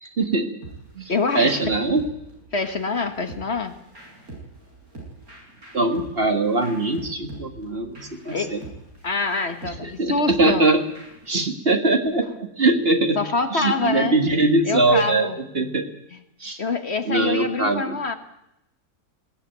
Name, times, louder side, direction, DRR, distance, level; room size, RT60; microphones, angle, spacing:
voice 1, 0.0-0.5 1.0-2.0 5.7-8.6 9.8-10.8 11.3-12.3 12.6-13.2 13.5-15.3 15.5-15.8 16.4-16.6 17.1-18.0, right 2 dB, 40° right, 7 dB, 1.9 m, -21 dB
sound 1, 0.6-11.3, right 2 dB, 65° right, 8.2 m, -43 dB
voice 2, 1.1-1.6 2.5-3.8 8.3-8.5 9.0-10.7 13.2-14.2 14.6-15.4 16.1-16.2 16.6-18.1, left 4 dB, 45° left, 9 dB, 1.5 m, -25 dB
20.0 x 17.0 x 9.3 m, 0.86 s
omnidirectional pair, 1.6 m